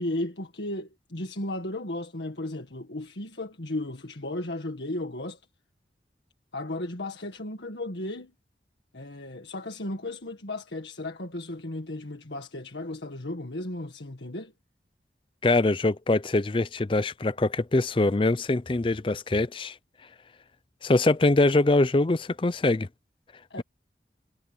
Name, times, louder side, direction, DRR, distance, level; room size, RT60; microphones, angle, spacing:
voice 1, 0.0-5.4 6.5-8.3 8.9-14.5 23.5-23.6, left 1 dB, 80° left, 1.8 m, -35 dB
voice 2, 15.4-19.7 20.8-22.9, left 2 dB, 30° left, 0.5 m, -23 dB
head